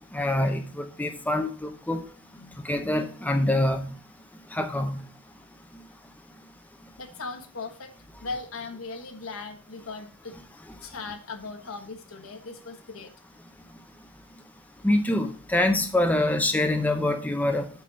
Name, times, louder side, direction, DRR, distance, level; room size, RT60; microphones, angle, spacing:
voice 1, 0.1-2.0 2.6-3.9 4.5-5.0 14.8-17.7, left 1 dB, 10° left, 5 dB, 0.7 m, -25 dB
voice 2, 7.0-7.9 8.2-10.4 10.8-13.1 14.7-14.8, left 3 dB, 75° left, 4 dB, 1.4 m, -38 dB
8.2 x 4.0 x 6.2 m, 0.43 s
head